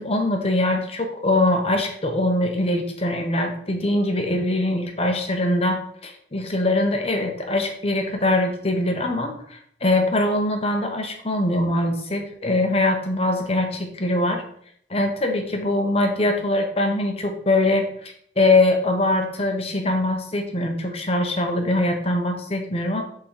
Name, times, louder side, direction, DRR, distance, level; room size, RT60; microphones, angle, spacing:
voice 1, 0.0-14.4 14.9-23.0, left 1 dB, 35° left, 4 dB, 1.0 m, -22 dB
6.1 x 3.9 x 4.8 m, 0.63 s
head